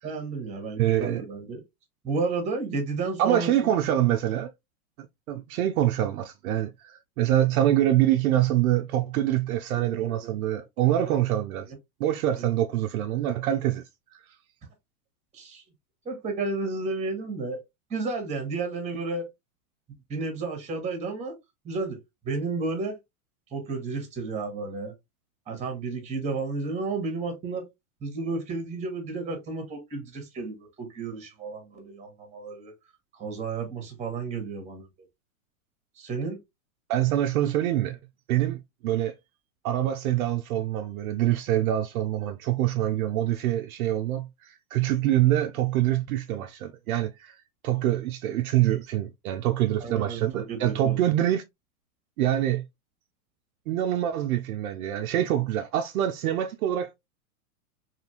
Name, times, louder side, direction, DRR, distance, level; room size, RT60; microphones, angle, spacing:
voice 1, 0.0-1.6 2.0-3.8 9.7-10.3 12.4-12.5 15.3-15.6 16.0-17.6 17.9-19.3 20.1-21.3 21.6-22.0 22.2-23.0 23.5-24.9 25.5-27.6 28.0-32.7 33.2-34.9 36.0-36.4 49.8-51.0, right 3 dB, 15° right, 1.1 m, -32 dB
voice 2, 0.8-1.2 3.2-4.5 5.0-11.7 12.0-13.8 36.9-38.0 38.3-39.1 39.6-47.3 47.6-51.4 52.2-52.6 53.7-56.9, right 12 dB, 70° right, 0.5 m, -25 dB
2.8 x 2.5 x 2.7 m
hypercardioid pair, 120°, 44 cm